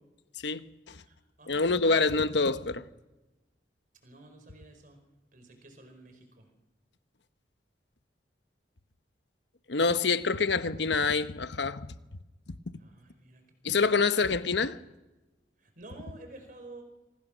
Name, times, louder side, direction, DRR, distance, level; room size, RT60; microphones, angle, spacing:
voice 1, 0.4-1.0 1.5-2.8 9.7-11.9 13.6-14.8, left 4 dB, 80° left, 1.0 m, -26 dB
voice 2, 1.0-2.0 4.0-5.0 5.3-6.5 12.8-13.9 15.6-16.8, right 2 dB, 50° right, 4.8 m, -51 dB
25.5 x 19.0 x 6.3 m
head